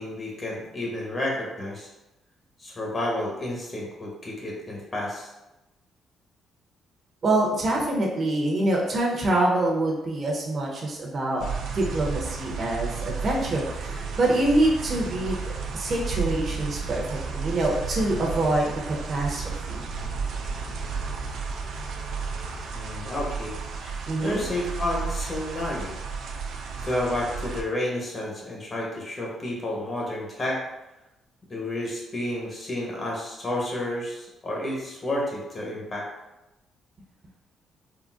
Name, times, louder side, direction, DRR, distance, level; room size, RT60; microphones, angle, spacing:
voice 1, 0.0-1.9 2.6-5.3 22.7-23.9 24.2-25.9 26.8-30.6 31.5-36.1, left 1 dB, 35° left, -3 dB, 1.0 m, -31 dB
voice 2, 7.2-11.5 11.7-19.8 24.1-24.4, right 2 dB, 45° right, -2 dB, 0.7 m, -25 dB
sound 1, 11.4-27.6, right 5 dB, 75° right, 0.3 m, -33 dB
sound 2, 12.9-22.7, right 3 dB, 65° left, 0.4 m, -40 dB
3.7 x 2.1 x 2.4 m, 0.95 s
cardioid pair, 90°, 0 cm